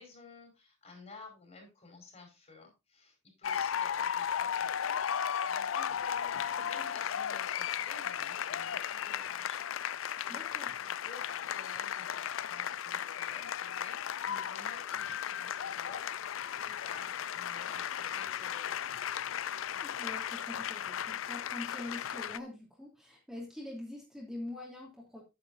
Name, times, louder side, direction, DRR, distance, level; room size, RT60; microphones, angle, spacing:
voice 1, 0.0-19.1, left 3 dB, 35° left, 3 dB, 5.0 m, -54 dB
sound 1, 3.4-22.4, left 9 dB, 75° left, 0.4 m, -35 dB
voice 2, 10.3-10.7 19.6-25.2, left 1 dB, ahead, -3 dB, 2.9 m, -44 dB
9.9 x 9.8 x 2.6 m, 0.25 s
head